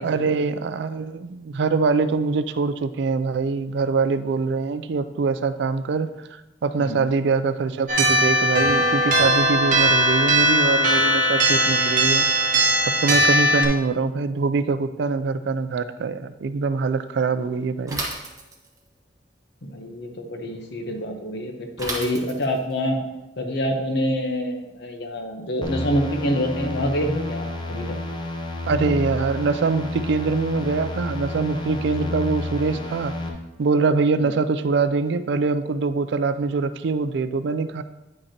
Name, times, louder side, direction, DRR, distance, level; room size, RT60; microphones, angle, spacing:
voice 1, 0.0-12.3 12.9-18.0 28.7-33.1 33.6-37.8, right 4 dB, 65° right, 12 dB, 0.4 m, -24 dB
sound 1, 7.9-13.6, right 1 dB, 50° right, 1.1 m, -19 dB
Bicycle / Mechanisms, 17.9-18.9 21.8-22.7, right 2 dB, 20° right, 1.2 m, -32 dB
voice 2, 19.6-23.0 23.4-27.9 32.0-32.1 34.2-34.3, equal, 65° left, 4 dB, 0.9 m, -26 dB
sound 2, 25.6-33.3, left 2 dB, 25° left, 0.8 m, -30 dB
9.4 x 5.2 x 2.9 m, 0.99 s
head